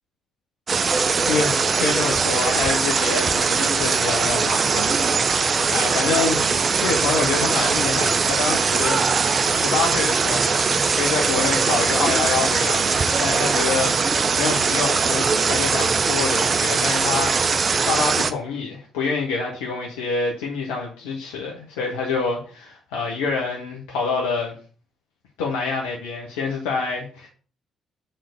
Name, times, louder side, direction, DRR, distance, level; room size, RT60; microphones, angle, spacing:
sound 1, 0.7-18.3, right 5 dB, 45° right, 0.7 m, -21 dB
voice 1, 1.3-4.9 5.7-6.5 6.8-10.6 10.9-24.6 25.4-27.3, left 4 dB, 80° left, -1 dB, 1.3 m, -27 dB
7.5 x 3.9 x 6.7 m, 0.39 s
hypercardioid pair, 45°, 0 cm